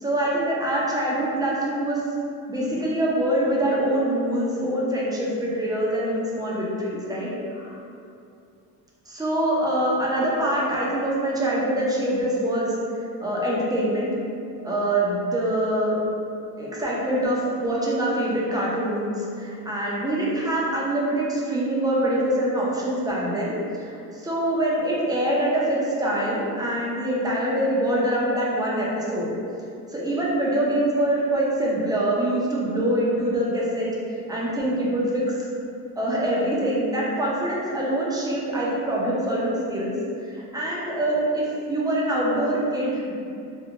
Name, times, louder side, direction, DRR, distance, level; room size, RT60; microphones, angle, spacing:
voice 1, 0.0-2.0 2.5-7.8 9.1-12.7 13.2-14.1 14.6-16.0 16.6-29.3 29.9-33.9 34.3-35.2 36.0-40.0 40.3-43.1, right 1 dB, 10° right, -6 dB, 0.5 m, -24 dB
2.5 x 2.1 x 2.7 m, 2.5 s
cardioid pair, 105°, 39 cm